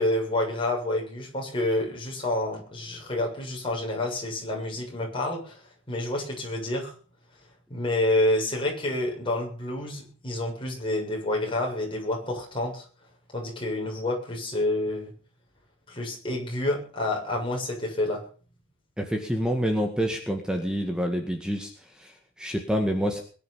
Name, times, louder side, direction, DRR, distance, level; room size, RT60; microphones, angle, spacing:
voice 1, 0.0-5.6 5.9-6.9 7.7-12.8 13.3-15.1 15.9-18.2, left 1 dB, 25° left, -1 dB, 7.1 m, -28 dB
voice 2, 19.0-23.2, equal, 5° right, 3 dB, 2.0 m, -28 dB
21.5 x 10.0 x 5.8 m, 0.40 s
head